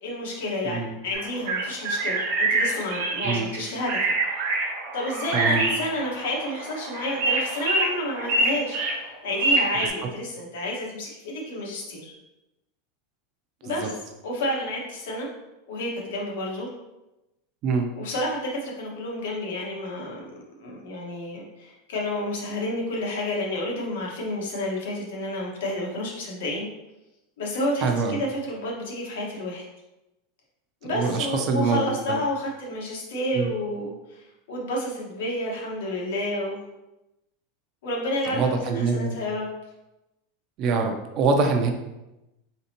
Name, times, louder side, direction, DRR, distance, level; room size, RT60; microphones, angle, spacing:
voice 1, 0.0-4.1 4.9-12.1 13.6-15.3 15.7-16.7 18.0-26.7 27.4-29.6 30.8-36.6 37.8-39.5, left 1 dB, 80° left, -2 dB, 1.4 m, -30 dB
sound 1, 1.1-9.9, right 2 dB, 55° right, 0.9 m, -26 dB
voice 2, 5.3-5.7 13.7-13.9 17.6-17.9 27.8-28.2 30.9-32.2 33.3-33.5 38.3-39.2 40.6-41.7, right 4 dB, 30° right, 4 dB, 0.4 m, -24 dB
4.1 x 3.9 x 2.8 m, 0.96 s
supercardioid pair, 180°, 0 cm